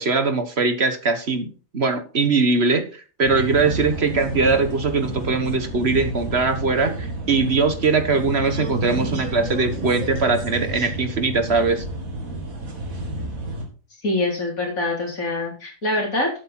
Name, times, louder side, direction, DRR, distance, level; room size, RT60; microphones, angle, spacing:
voice 1, 0.0-11.8, right 4 dB, 50° right, 8 dB, 1.7 m, -21 dB
sound 1, 3.2-13.7, right 2 dB, 85° right, 2.9 m, -30 dB
voice 2, 14.0-16.3, left 2 dB, 85° left, 0 dB, 4.4 m, -24 dB
12.0 x 8.5 x 4.4 m, 0.36 s
omnidirectional pair, 1.4 m